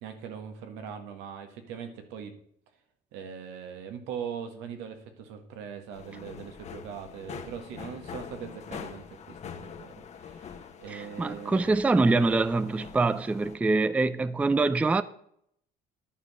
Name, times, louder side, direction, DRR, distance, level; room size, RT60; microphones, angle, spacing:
voice 1, 0.0-2.3 3.1-11.9, right 7 dB, 80° right, 1.6 m, -41 dB
sound 1, 5.9-13.6, left 7 dB, 40° left, 1.1 m, -44 dB
voice 2, 10.9-15.0, right 3 dB, 5° right, 0.3 m, -24 dB
11.0 x 4.9 x 5.5 m
cardioid pair, 110°, 18 cm